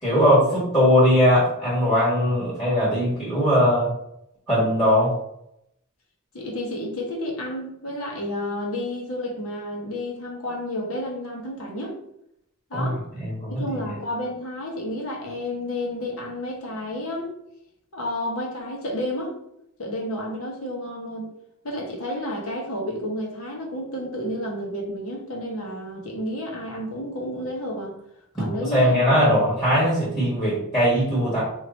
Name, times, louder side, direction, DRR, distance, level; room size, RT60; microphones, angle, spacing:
voice 1, 0.0-3.9 4.5-5.1 12.7-12.9 13.2-13.6 28.3-31.4, equal, 15° left, -8 dB, 1.4 m, -20 dB
voice 2, 6.3-12.0 12.7-13.0 13.6-17.3 17.9-19.3 19.8-21.3 21.6-28.0 28.4-29.2, left 1 dB, 70° left, -1 dB, 1.1 m, -31 dB
3.2 x 2.8 x 4.0 m, 0.76 s
head